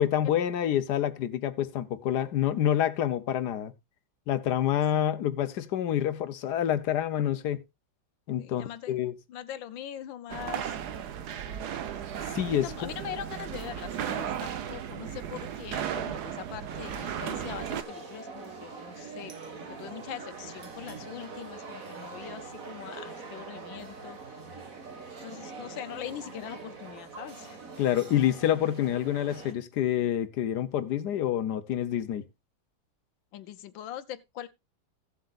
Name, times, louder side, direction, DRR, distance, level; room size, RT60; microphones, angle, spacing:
voice 1, 0.0-3.7 4.3-7.6 8.3-9.1 12.3-12.9 27.8-32.2, left 11 dB, 65° left, 1.4 m, -27 dB
voice 2, 8.4-9.0 9.3-10.8 12.6-24.4 25.2-27.6 33.3-34.5, left 11 dB, 90° left, 1.6 m, -42 dB
sound 1, 10.3-17.8, right 9 dB, 65° right, 1.4 m, -35 dB
sound 2, 16.7-29.5, right 4 dB, 45° right, 2.1 m, -43 dB
16.5 x 7.7 x 2.4 m
omnidirectional pair, 2.0 m